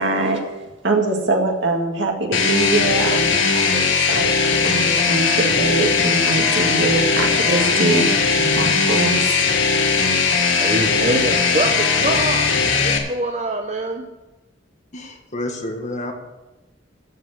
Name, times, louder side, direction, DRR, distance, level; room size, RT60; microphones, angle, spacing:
voice 1, 0.0-3.8 4.1-9.4, right 2 dB, 65° right, 1 dB, 2.0 m, -23 dB
sound 1, 2.3-13.0, left 5 dB, 75° left, 1.6 m, -19 dB
voice 2, 10.6-12.5 12.8-14.1, right 1 dB, 35° right, 3 dB, 0.7 m, -24 dB
voice 3, 14.9-16.1, left 1 dB, 40° left, 3 dB, 1.6 m, -29 dB
14.0 x 5.3 x 7.9 m, 1.1 s
head